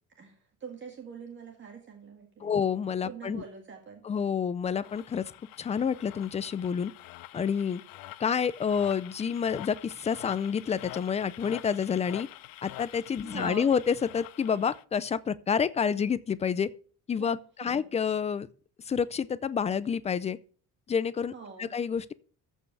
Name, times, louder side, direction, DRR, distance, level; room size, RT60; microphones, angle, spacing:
voice 1, 0.6-2.5 3.1-4.0 13.2-13.7 17.2-17.4 17.8-17.9 21.3-21.7, right 5 dB, 35° right, 1.9 m, -43 dB
voice 2, 2.4-3.4 4.0-5.3 5.6-6.9 7.3-7.8 8.2-12.3 12.6-16.7 17.1-18.5 18.8-20.4 20.9-22.1, left 7 dB, 20° left, 0.4 m, -29 dB
sound 1, 4.8-14.8, left 16 dB, 85° left, 0.6 m, -46 dB
14.0 x 5.5 x 6.0 m
cardioid pair, 180°, 34 cm